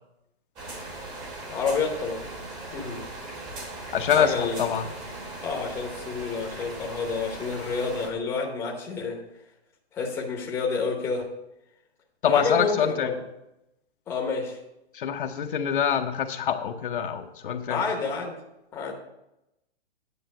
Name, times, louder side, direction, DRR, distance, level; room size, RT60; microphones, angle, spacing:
sound 1, 0.6-8.1, right 2 dB, 15° right, 1.1 m, -39 dB
voice 1, 1.5-2.2 2.7-3.1 4.1-4.7 5.4-9.2 9.9-11.3 12.2-13.1 14.1-14.6 17.7-18.4 18.7-18.9, left 4 dB, 10° left, -1 dB, 0.9 m, -29 dB
voice 2, 3.9-4.8 12.2-13.2 14.9-17.8, left 8 dB, 50° left, 6 dB, 0.8 m, -25 dB
9.7 x 5.4 x 6.6 m, 0.87 s
hypercardioid pair, 165°, 32 cm